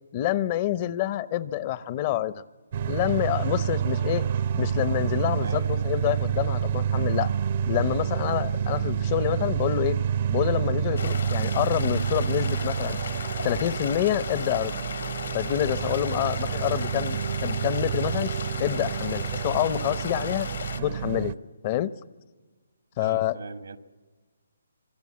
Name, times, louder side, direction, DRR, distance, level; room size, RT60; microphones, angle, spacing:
voice 1, 0.1-2.4 2.9-4.2 4.5-7.3 7.7-10.0 10.3-13.0 13.4-14.8 15.3-20.5 20.8-21.4 21.6-21.9 23.0-23.4, left 12 dB, 30° left, 0.8 m, -27 dB
sound 1, 2.7-21.3, right 8 dB, 45° right, 0.7 m, -28 dB
voice 2, 5.4-5.9 16.2-16.4 23.0-23.8, right 4 dB, 80° right, 1.8 m, -40 dB
sound 2, 11.0-20.8, left 6 dB, 70° left, 1.9 m, -36 dB
26.5 x 23.0 x 8.6 m
hypercardioid pair, 155°, 0 cm